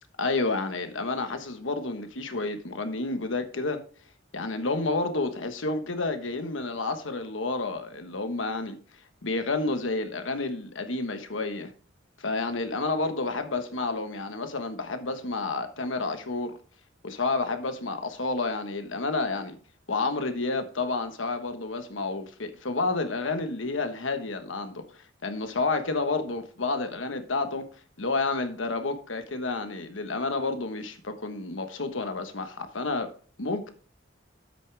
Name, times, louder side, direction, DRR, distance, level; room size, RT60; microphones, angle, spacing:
voice 1, 0.2-3.8 4.3-8.8 9.2-11.7 12.2-16.6 17.0-19.6 19.9-24.8 25.2-27.7 28.0-33.1 33.4-33.7, left 3 dB, 85° left, 1.3 m, -30 dB
9.2 x 8.5 x 3.4 m
head